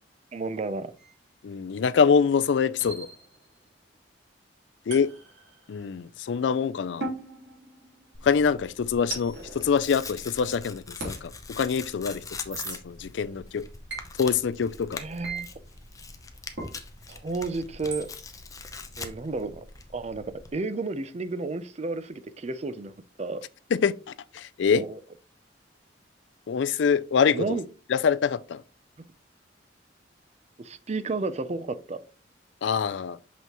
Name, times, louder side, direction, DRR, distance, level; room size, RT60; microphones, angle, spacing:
voice 1, 0.3-0.9 15.0-15.5 17.1-18.1 19.0-19.6 19.9-20.2 20.5-22.9 23.2-23.4 24.8-25.0 27.3-27.6 30.6-32.0, right 3 dB, 35° right, 0.5 m, -32 dB
sound 1, 1.0-1.1 2.8-3.6 4.9-6.0 7.0-8.3 9.1-10.4 11.0-11.2 12.5-12.8 13.9-14.1 15.2-15.4 16.6-16.8 17.9-18.1, right 3 dB, 75° right, 3.0 m, -38 dB
voice 2, 1.4-3.1 4.9-5.1 5.7-7.1 8.2-13.7 14.2-15.0 23.7-24.8 26.5-27.6 27.9-28.6 32.6-33.2, left 6 dB, 75° left, 0.4 m, -25 dB
Tearing, 8.1-20.5, left 4 dB, 20° left, 0.7 m, -43 dB
6.1 x 5.6 x 3.0 m
head